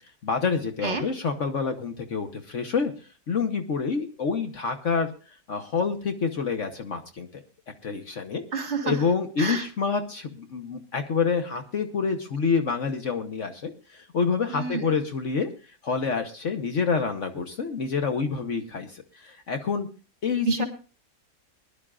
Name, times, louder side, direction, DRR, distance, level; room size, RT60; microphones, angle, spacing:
voice 1, 0.2-2.9 3.3-5.1 5.5-7.4 7.8-8.4 8.8-15.5 15.8-19.9 20.2-20.6, left 5 dB, 50° left, 6 dB, 1.3 m, -27 dB
voice 2, 8.5-9.0 9.4-9.6 14.5-14.9 20.5-20.6, right 4 dB, 45° right, 5 dB, 2.0 m, -28 dB
22.5 x 11.0 x 2.4 m, 0.34 s
omnidirectional pair, 1.7 m